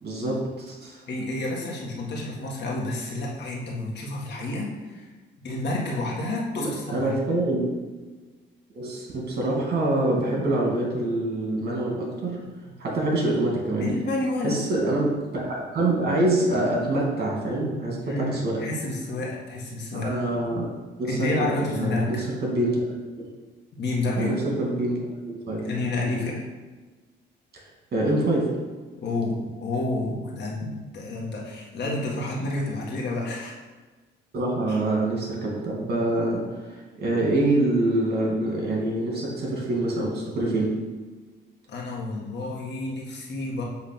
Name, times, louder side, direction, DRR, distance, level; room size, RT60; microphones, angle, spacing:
voice 1, 0.0-1.0 6.6-7.6 8.7-12.4 12.8-13.9 14.4-18.6 19.9-22.8 23.2-23.3 24.2-25.0 25.5-25.7 26.1-26.3 27.9-28.6 34.3-40.8, right 2 dB, 55° right, -2 dB, 2.3 m, -25 dB
voice 2, 1.1-5.1 5.4-7.1 13.8-14.6 18.0-20.2 21.0-22.2 23.8-24.4 25.6-26.4 29.0-33.6 34.7-34.8 41.7-43.6, left 2 dB, 60° left, -3 dB, 1.7 m, -29 dB
7.5 x 3.1 x 6.0 m, 1.3 s
cardioid pair, 90°, 20 cm